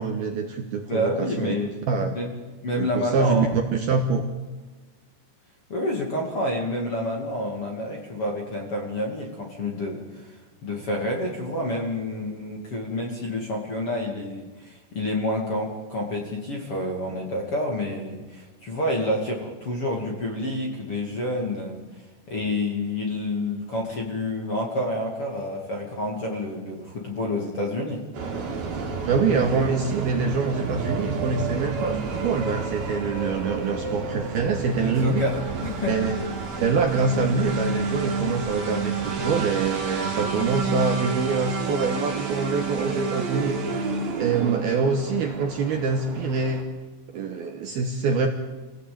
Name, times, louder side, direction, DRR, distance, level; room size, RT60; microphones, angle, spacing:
voice 1, 0.0-1.6 1.9-2.2 2.7-4.2 29.1-35.2 35.9-36.2 36.6-43.5 44.2-46.6 47.1-48.3, right 4 dB, 70° right, 3 dB, 2.5 m, -25 dB
voice 2, 0.8-1.7 2.1-2.3 2.6-3.5 5.7-21.8 22.3-28.1 34.8-35.4 35.6-36.0, left 1 dB, 40° left, 0 dB, 2.4 m, -28 dB
sound 1, 28.1-46.6, right 4 dB, 50° right, 4.8 m, -30 dB
27.5 x 17.5 x 8.8 m, 1.2 s
omnidirectional pair, 5.9 m